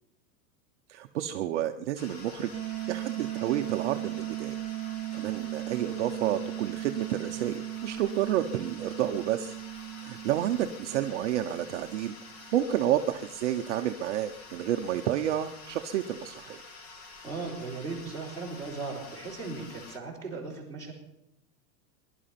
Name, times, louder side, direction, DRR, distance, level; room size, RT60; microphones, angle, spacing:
voice 1, 0.9-2.5 2.9-4.6 5.1-9.5 10.0-12.1 12.5-16.6, right 11 dB, 45° right, 5 dB, 0.7 m, -30 dB
sound 1, 2.0-20.0, left 3 dB, 25° left, 0.7 m, -48 dB
sound 2, 2.5-13.2, right 15 dB, 85° right, 0.9 m, -38 dB
voice 2, 17.2-20.9, right 4 dB, 5° left, -2 dB, 4.2 m, -37 dB
21.0 x 11.5 x 5.8 m, 0.84 s
supercardioid pair, 180°, 49 cm